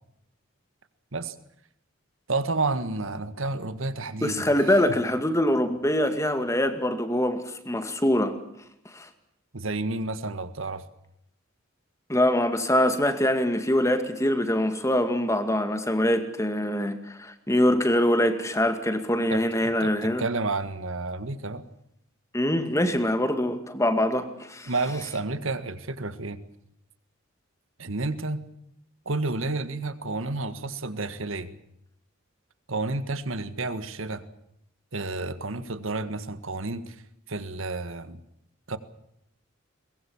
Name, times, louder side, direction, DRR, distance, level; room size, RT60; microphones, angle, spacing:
voice 1, 2.3-4.9 9.5-10.8 19.3-21.6 24.7-26.4 27.8-28.4 29.1-31.5 32.7-34.2 34.9-37.0 37.3-38.2 38.7-38.8, right 3 dB, 70° right, 12 dB, 1.7 m, -31 dB
voice 2, 4.2-8.4 8.9-9.1 12.1-20.2 22.3-24.7, left 1 dB, 15° left, 8 dB, 2.2 m, -24 dB
23.0 x 21.5 x 7.2 m, 0.76 s
head